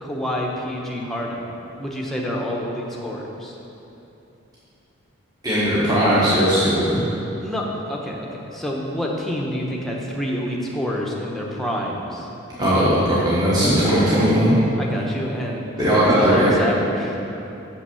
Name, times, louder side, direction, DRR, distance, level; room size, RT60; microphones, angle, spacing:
voice 1, 0.0-1.5 1.8-3.6 7.4-12.3 14.8-17.2, equal, ahead, -2 dB, 0.8 m, -28 dB
voice 2, 5.4-7.0 12.6-14.5 15.8-16.6, equal, 20° right, -10 dB, 1.2 m, -18 dB
6.2 x 5.9 x 6.9 m, 2.9 s
head